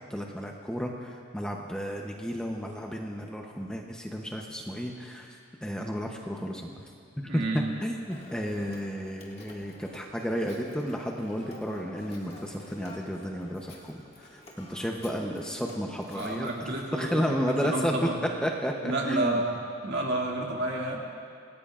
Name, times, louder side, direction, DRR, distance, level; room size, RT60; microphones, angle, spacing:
voice 1, 0.1-5.3 5.6-6.8 7.3-18.1 18.4-19.4, equal, 5° left, 0 dB, 0.8 m, -32 dB
voice 2, 7.2-7.7 16.1-18.1 18.8-21.0, right 2 dB, 55° right, -2 dB, 2.2 m, -31 dB
Telephone, 8.1-17.2, left 1 dB, 30° left, 1.9 m, -50 dB
26.5 x 18.5 x 2.5 m, 2.4 s
head